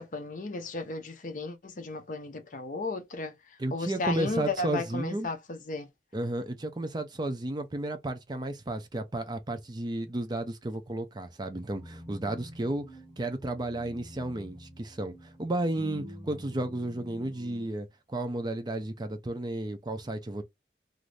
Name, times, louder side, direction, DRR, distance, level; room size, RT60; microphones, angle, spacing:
voice 1, 0.0-5.9, left 3 dB, 45° left, 0.5 m, -35 dB
voice 2, 3.6-5.3 6.1-12.8 13.2-15.1 15.4-17.9 18.1-20.4, right 1 dB, 25° right, 0.4 m, -33 dB
sound 1, 11.7-17.7, equal, 10° left, 1.1 m, -47 dB
2.5 x 2.5 x 3.1 m
head